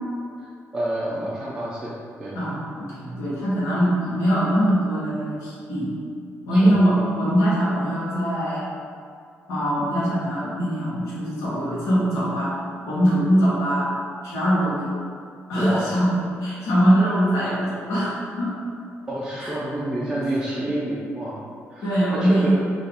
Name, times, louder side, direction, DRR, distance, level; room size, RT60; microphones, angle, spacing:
voice 1, 0.4-1.9 2.2-2.4 6.5-6.7 15.6-15.9 19.1-21.4 21.7-22.6, right 1 dB, 15° right, -8 dB, 0.6 m, -28 dB
voice 2, 2.3-5.9 6.5-8.7 9.5-12.6 12.8-13.9 14.2-14.9 15.5-18.5 19.4-19.5 21.8-22.6, equal, 90° left, -9 dB, 1.2 m, -22 dB
3.9 x 2.6 x 3.4 m, 2.3 s
cardioid pair, 105°, 5 cm